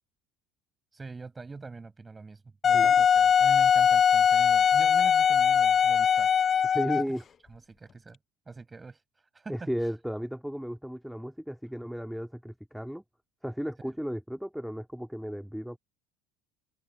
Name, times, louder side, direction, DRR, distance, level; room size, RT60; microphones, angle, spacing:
voice 1, 0.9-6.3 6.8-7.0 7.5-8.2 8.5-9.0 9.3-9.7 13.8-13.9, right 4 dB, 20° right, 7.3 m, -43 dB
Wind instrument woodwind instrument, 2.6-7.2, left 7 dB, 40° left, 0.3 m, -21 dB
voice 2, 6.7-7.2 9.5-13.0 13.4-15.8, equal, ahead, 4.0 m, -34 dB
hypercardioid pair, 80°, 0 cm